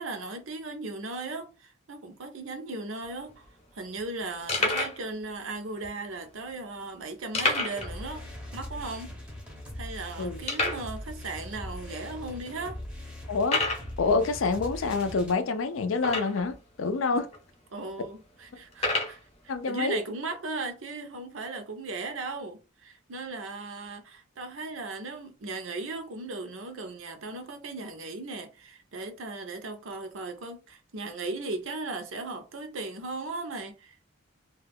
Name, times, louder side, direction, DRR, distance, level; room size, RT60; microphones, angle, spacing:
voice 1, 0.0-3.5 3.7-8.3 8.5-9.2 9.8-12.8 17.7-34.0, right 3 dB, 75° right, 0.7 m, -37 dB
sound 1, 3.0-3.1 3.3-3.5 4.0-4.1 4.5-5.0 5.8-5.9 7.3-7.9 8.2-8.3 8.8-8.9 9.4-9.5 10.5-10.9 11.7-11.8 12.4-12.5 13.4-13.9 16.0-16.5 17.3-17.4 18.7-19.2, left 2 dB, 30° left, 0.7 m, -28 dB
sound 2, 7.7-15.3, left 1 dB, 5° right, 0.6 m, -41 dB
voice 2, 13.3-13.6 14.0-17.3 19.5-20.0, left 4 dB, 70° left, 0.4 m, -27 dB
2.3 x 2.2 x 3.4 m
head